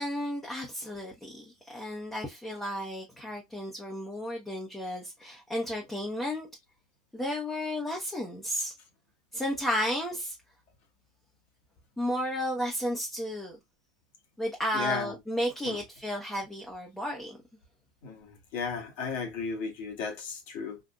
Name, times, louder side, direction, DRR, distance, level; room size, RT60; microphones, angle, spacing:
voice 1, 0.0-6.5 7.1-8.7 9.3-10.4 12.0-13.6 14.4-17.4, equal, 5° left, 0.9 m, -33 dB
voice 2, 14.7-15.2 15.6-15.8 18.0-20.8, left 5 dB, 60° left, 1.6 m, -35 dB
3.8 x 2.6 x 2.3 m
hypercardioid pair, 105°, 4 cm